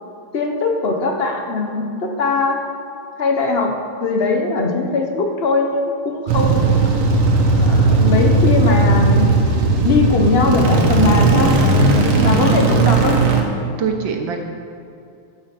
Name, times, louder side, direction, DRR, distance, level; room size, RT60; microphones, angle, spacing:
voice 1, 0.3-2.6 3.2-3.7 4.0-6.7 7.5-9.3 9.7-11.5 12.2-13.2, left 3 dB, 45° left, 3 dB, 0.8 m, -20 dB
sound 1, 6.3-13.4, right 3 dB, 80° right, 2.0 m, -15 dB
voice 2, 12.2-12.6 13.8-14.4, right 5 dB, 65° right, 3 dB, 1.8 m, -23 dB
13.0 x 6.1 x 6.0 m, 2.5 s
omnidirectional pair, 2.4 m